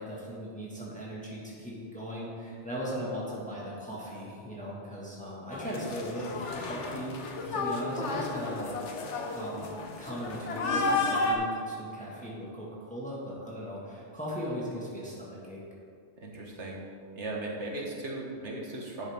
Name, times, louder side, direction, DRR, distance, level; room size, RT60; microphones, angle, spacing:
voice 1, 0.0-7.1 7.5-8.7 9.3-15.6, equal, 5° left, -6 dB, 1.8 m, -38 dB
sound 1, 5.5-11.3, left 3 dB, 85° left, 1.3 m, -32 dB
voice 2, 16.2-16.8 17.1-19.1, right 2 dB, 85° right, -2 dB, 1.9 m, -37 dB
11.5 x 8.2 x 3.6 m, 2.3 s
omnidirectional pair, 1.2 m